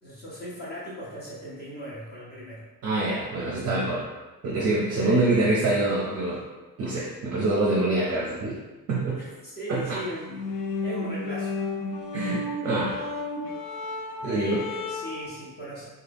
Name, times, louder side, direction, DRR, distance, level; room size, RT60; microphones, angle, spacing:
voice 1, 0.0-2.7 5.0-5.3 9.2-10.5 10.8-11.5 14.4-15.9, equal, 30° left, -7 dB, 0.6 m, -38 dB
voice 2, 2.8-4.0 4.4-6.4 6.8-8.5 8.9-9.2 9.7-10.0 12.1-13.0 14.2-14.6, right 2 dB, 45° right, -5 dB, 0.5 m, -25 dB
sound 1, 10.3-15.3, left 3 dB, 80° left, 0.5 m, -32 dB
2.7 x 2.2 x 3.3 m, 1.2 s
cardioid pair, 175°, 36 cm